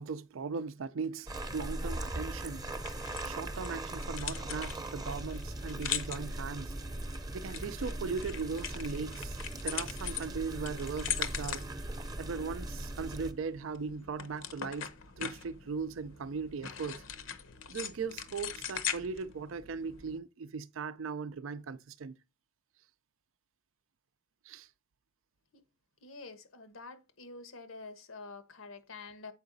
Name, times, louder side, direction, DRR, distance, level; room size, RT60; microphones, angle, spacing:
voice 1, 0.0-2.7 3.2-6.8 7.3-9.4 9.6-11.6 12.2-14.9 15.2-17.0 17.7-22.2 24.4-24.7, right 5 dB, 75° right, 0.5 m, -38 dB
sound 1, 1.3-13.3, right 1 dB, 20° right, 0.7 m, -39 dB
sound 2, 2.8-20.2, left 8 dB, 70° left, 0.9 m, -42 dB
voice 2, 26.0-29.3, left 3 dB, 90° left, 1.2 m, -47 dB
7.9 x 4.8 x 3.9 m
head